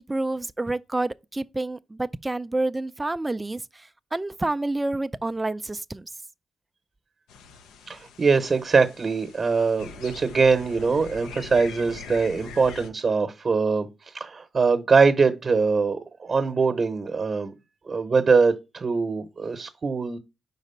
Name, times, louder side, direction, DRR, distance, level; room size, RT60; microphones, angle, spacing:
voice 1, 0.0-6.1, right 2 dB, 20° right, 0.4 m, -29 dB
sound 1, 7.3-12.9, left 5 dB, 90° left, 0.6 m, -43 dB
voice 2, 7.9-13.9 14.1-17.5 17.9-20.2, right 4 dB, 45° right, 0.9 m, -22 dB
5.0 x 4.0 x 5.5 m
cardioid pair, 60°, 0 cm